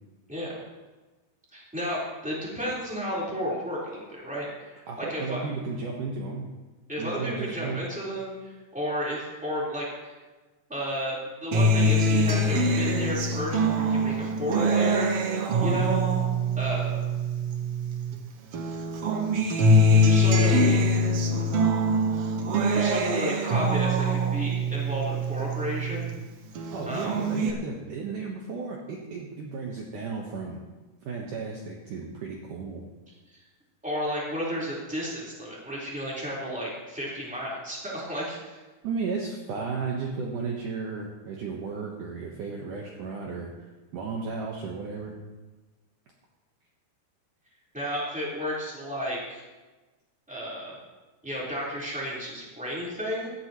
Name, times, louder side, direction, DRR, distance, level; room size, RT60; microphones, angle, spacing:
voice 1, 1.5-5.4 6.9-10.2 10.7-15.1 15.6-16.0 16.6-17.0 19.9-20.8 22.7-26.1 26.9-27.2 33.3-33.4 33.8-38.6 47.7-49.5 50.3-50.8 51.2-53.3, equal, ahead, -6 dB, 3.5 m, -32 dB
voice 2, 4.9-6.5 7.0-7.8 15.5-16.0 26.7-30.6 31.0-32.8 38.8-43.5 43.9-45.2, right 4 dB, 65° right, -1 dB, 2.4 m, -34 dB
Acoustic guitar, 11.5-18.2 18.5-26.2 26.6-27.5, equal, 85° right, 1.3 m, -24 dB
16.5 x 14.0 x 3.1 m, 1.2 s
omnidirectional pair, 4.6 m